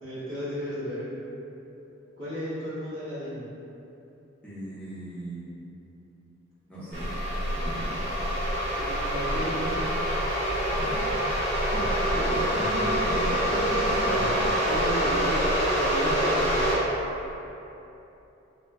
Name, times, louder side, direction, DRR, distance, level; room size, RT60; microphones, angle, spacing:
voice 1, 0.0-1.1 2.2-3.4 8.8-9.8 11.7-12.3 14.0-14.3 14.7-16.7, equal, 75° right, -10 dB, 1.0 m, -35 dB
voice 2, 4.4-5.6 6.7-8.0 10.7-11.7 12.1-14.7, equal, 5° left, -12 dB, 0.7 m, -38 dB
sound 1, 6.9-16.8, equal, 50° right, 1.1 m, -26 dB
3.1 x 2.1 x 3.6 m, 2.9 s
head